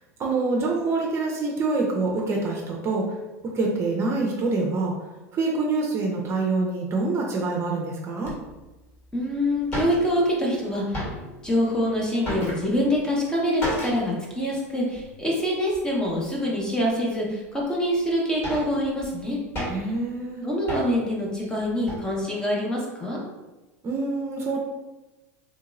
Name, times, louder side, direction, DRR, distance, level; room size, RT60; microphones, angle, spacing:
voice 1, 0.2-3.1 3.4-4.9 5.3-8.3 19.7-20.4 23.8-24.6, right 3 dB, 35° right, -1 dB, 0.6 m, -26 dB
sound 1, 8.2-8.3 9.0-9.1 9.3-9.4 9.6-10.4 10.7-11.5 11.8-13.0 13.6-14.2 14.5-14.6 14.9-15.1 15.7-16.2 16.8-16.9 17.6-17.7 18.1-20.0 20.7-21.1 21.6-22.1, equal, 35° left, 1.5 m, -33 dB
voice 2, 9.1-11.0 11.4-19.4 20.4-23.2, equal, 10° left, -3 dB, 0.9 m, -25 dB
3.1 x 2.8 x 2.4 m, 1.1 s
hypercardioid pair, 95°, 8 cm